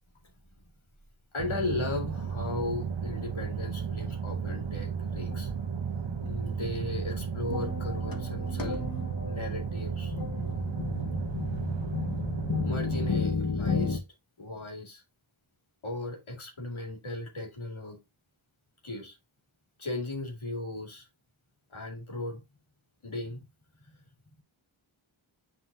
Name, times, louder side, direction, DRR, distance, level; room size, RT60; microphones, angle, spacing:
voice 1, 1.3-5.5 6.2-8.9 9.2-10.7 12.6-14.0 14.4-15.0 15.8-18.0 18.8-19.2 19.8-21.1 21.7-22.4 23.0-23.4 23.8-24.0, left 2 dB, 80° left, 2.2 m, -36 dB
sound 1, 1.4-13.1, right 6 dB, 65° right, 1.0 m, -34 dB
sound 2, 5.3-5.6 6.2-6.4 6.6-14.0, left 5 dB, 45° left, 1.2 m, -33 dB
9.3 x 3.9 x 2.7 m
wide cardioid pair, 50°, 48 cm